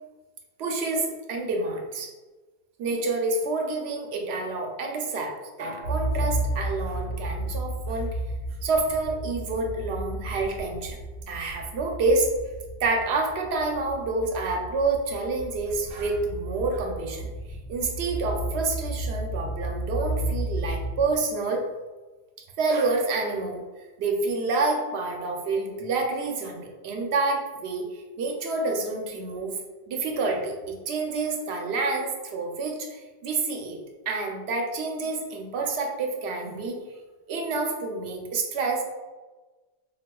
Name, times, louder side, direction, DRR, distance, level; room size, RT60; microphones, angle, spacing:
voice 1, 0.6-2.1 2.8-8.1 8.6-11.0 11.3-12.3 12.8-17.3 17.7-21.6 22.6-29.5 29.9-33.8 34.1-36.8 37.3-38.8, right 3 dB, 85° right, 2 dB, 0.8 m, -28 dB
sound 1, 5.8-21.5, right 1 dB, 80° left, 1.0 m, -32 dB
4.0 x 2.3 x 2.2 m, 1.3 s
omnidirectional pair, 1.1 m